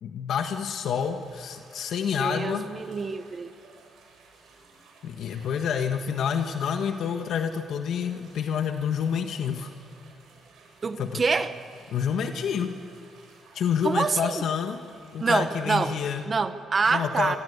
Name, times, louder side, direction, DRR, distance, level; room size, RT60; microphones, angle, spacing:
voice 1, 0.0-2.7 5.0-9.7 11.0-11.2 11.9-12.8 13.5-14.8 15.1-16.2 16.9-17.4, left 7 dB, 65° left, 6 dB, 1.4 m, -28 dB
sound 1, 0.9-16.2, right 4 dB, 75° right, 7.5 m, -55 dB
voice 2, 2.2-3.5 10.8-11.5 13.8-14.4 15.2-16.0 16.3-17.4, right 4 dB, 30° right, 11 dB, 1.0 m, -26 dB
26.0 x 26.0 x 8.2 m, 2.7 s
cardioid pair, 145°, 0 cm